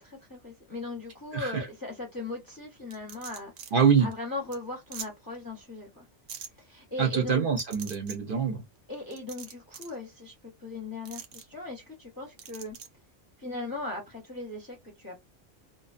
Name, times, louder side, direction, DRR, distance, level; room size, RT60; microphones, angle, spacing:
voice 1, 0.0-3.7 4.0-6.1 6.6-7.5 8.9-12.8 13.4-15.2, left 2 dB, 25° left, 0.6 m, -38 dB
sound 1, 2.9-3.7 4.1-4.2 4.5-4.6 4.9-5.1 6.3-6.5 7.6-8.2 9.1-10.0 11.1-11.4 12.4-12.9, right 7 dB, 90° right, 1.0 m, -42 dB
voice 2, 3.7-4.1 7.0-8.6, right 6 dB, 55° right, 0.7 m, -24 dB
2.6 x 2.2 x 2.4 m
omnidirectional pair, 1.2 m